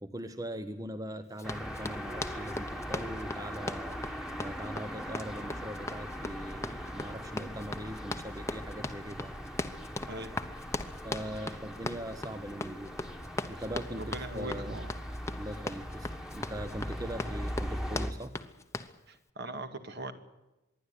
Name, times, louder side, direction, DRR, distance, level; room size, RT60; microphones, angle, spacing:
voice 1, 0.0-9.3 11.0-12.9 13.5-14.8 15.4-18.3, equal, 20° right, 10 dB, 0.9 m, -41 dB
Run, 1.4-19.0, left 2 dB, 15° left, 0.9 m, -39 dB
sound 1, 1.4-18.1, equal, 5° right, 1.6 m, -40 dB
voice 2, 11.3-11.6 14.0-14.9 19.1-20.1, right 2 dB, 55° right, 8 dB, 1.9 m, -41 dB
25.5 x 11.5 x 9.7 m, 1.0 s
head